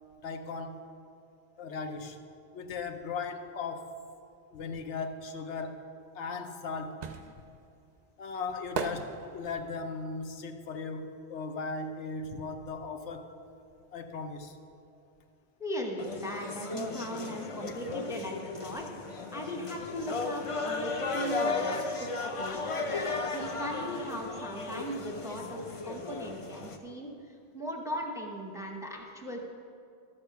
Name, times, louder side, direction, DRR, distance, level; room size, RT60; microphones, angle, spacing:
voice 1, 0.2-0.8 1.6-2.2 2.5-3.9 4.5-5.8 6.1-7.0 8.2-13.2 13.9-14.6, left 4 dB, 80° left, 6 dB, 1.0 m, -37 dB
sound 1, 6.1-12.0 12.3-13.9 14.1-14.2, right 6 dB, 55° right, 0.5 m, -40 dB
voice 2, 15.6-18.9 19.3-22.6 23.3-29.5, equal, 5° right, 0 dB, 0.8 m, -38 dB
sound 2, 16.0-26.8, left 3 dB, 35° left, 0.5 m, -35 dB
12.5 x 6.7 x 5.7 m, 2.5 s
omnidirectional pair, 1.2 m